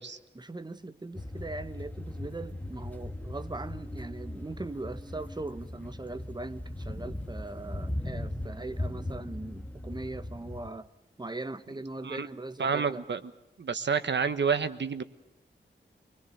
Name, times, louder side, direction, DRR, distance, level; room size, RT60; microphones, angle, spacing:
voice 1, 0.3-10.9 11.2-13.0, right 2 dB, 20° right, 12 dB, 1.0 m, -40 dB
sound 1, 1.1-10.7, left 1 dB, 10° left, 1.9 m, -38 dB
voice 2, 12.6-13.2 13.6-15.0, right 6 dB, 75° right, 11 dB, 1.2 m, -29 dB
25.5 x 20.5 x 6.6 m, 0.96 s
wide cardioid pair, 120°, 19 cm